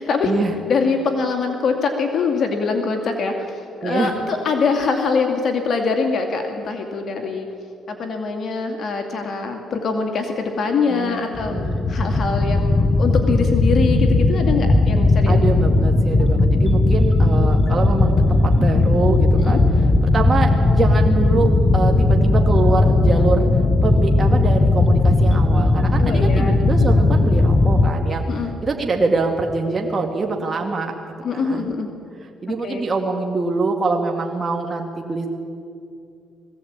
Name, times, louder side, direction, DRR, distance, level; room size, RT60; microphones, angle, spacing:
voice 1, 0.0-0.3 0.7-7.5 7.9-11.5 11.9-15.5 19.4-19.6 26.0-26.6 28.3-28.5 31.2-31.9 32.6-32.8, left 4 dB, 55° left, 4 dB, 2.4 m, -23 dB
voice 2, 3.8-4.1 10.9-11.9 15.3-19.6 20.1-23.5 23.8-28.2 28.6-30.9 31.3-31.7 32.4-35.3, right 3 dB, 35° right, 2 dB, 2.1 m, -24 dB
sound 1, 11.3-27.9, left 2 dB, 35° left, 1.1 m, -17 dB
20.5 x 16.5 x 8.8 m, 2.5 s
cardioid pair, 90°, 0 cm